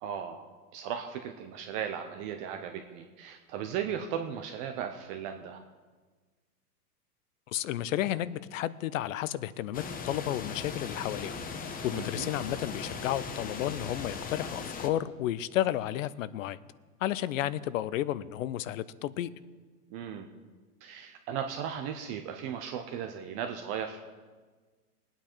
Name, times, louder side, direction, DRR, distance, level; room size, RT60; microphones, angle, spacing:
voice 1, 0.0-0.4 0.7-5.6 11.9-12.3 19.9-20.3 20.8-24.0, right 8 dB, 20° right, 5 dB, 0.3 m, -36 dB
voice 2, 7.5-11.4 11.8-16.6 17.0-19.3, left 12 dB, 60° left, 18 dB, 0.6 m, -32 dB
sound 1, 9.7-14.9, left 5 dB, 20° left, 0.9 m, -39 dB
20.0 x 9.0 x 4.4 m, 1.4 s
hypercardioid pair, 115°, 46 cm